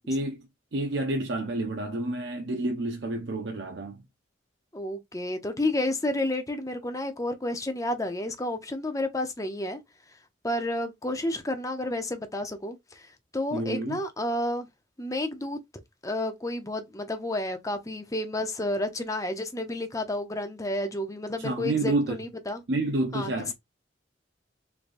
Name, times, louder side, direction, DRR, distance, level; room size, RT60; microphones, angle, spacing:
voice 1, 0.1-0.5 0.7-4.0 13.5-14.0 21.4-22.2 22.7-23.5, right 2 dB, 65° right, 0.7 m, -29 dB
voice 2, 4.7-9.8 10.4-13.1 13.3-14.7 15.0-15.6 16.0-22.6 23.1-23.5, left 1 dB, 20° left, 0.7 m, -31 dB
3.9 x 3.3 x 2.6 m
head